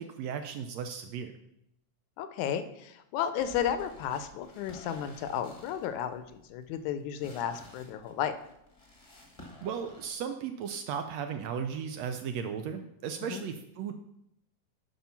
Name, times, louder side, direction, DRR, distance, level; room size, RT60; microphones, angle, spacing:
voice 1, 0.0-1.3 9.6-13.9, right 7 dB, 75° right, 7 dB, 1.6 m, -36 dB
voice 2, 2.2-8.3 13.2-13.4, left 9 dB, 80° left, 10 dB, 2.1 m, -33 dB
sound 1, 3.4-10.1, left 2 dB, 20° left, 1.0 m, -53 dB
10.5 x 4.9 x 5.7 m, 0.79 s
omnidirectional pair, 3.4 m